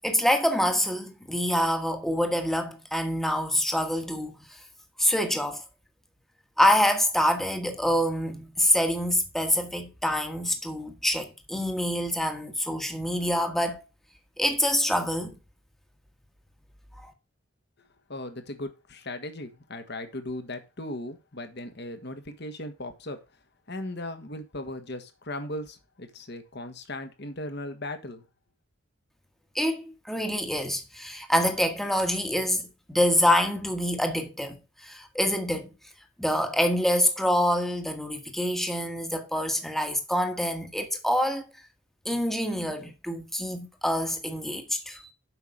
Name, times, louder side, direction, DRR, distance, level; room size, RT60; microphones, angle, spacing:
voice 1, 0.0-4.6 5.0-5.6 6.6-13.8 14.4-15.3 17.0-17.1 29.5-35.7 36.2-41.5 42.0-45.1, equal, ahead, 1.3 m, -26 dB
voice 2, 18.1-23.2 23.7-28.2, left 1 dB, 55° left, 1.6 m, -37 dB
8.0 x 5.7 x 6.4 m
head